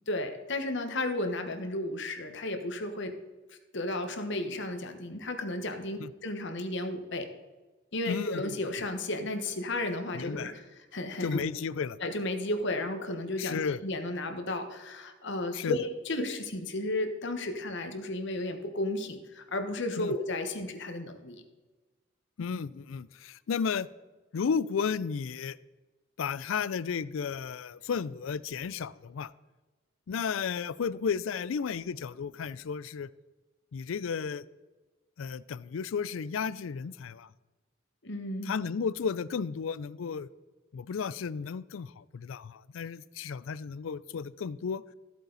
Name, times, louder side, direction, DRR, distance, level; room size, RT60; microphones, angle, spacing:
voice 1, 0.1-3.2 3.7-7.3 7.9-10.6 10.9-11.5 12.0-21.4 38.0-38.5, left 2 dB, 60° left, 6 dB, 1.3 m, -33 dB
voice 2, 8.1-8.4 10.1-10.5 11.2-12.0 13.4-13.8 15.5-15.8 20.0-20.1 22.4-23.9 24.3-25.6 26.2-29.3 30.1-33.1 33.7-34.5 35.2-37.3 38.5-40.3 40.7-44.8, left 6 dB, 80° left, 19 dB, 0.4 m, -33 dB
13.5 x 8.2 x 4.0 m, 1.2 s
head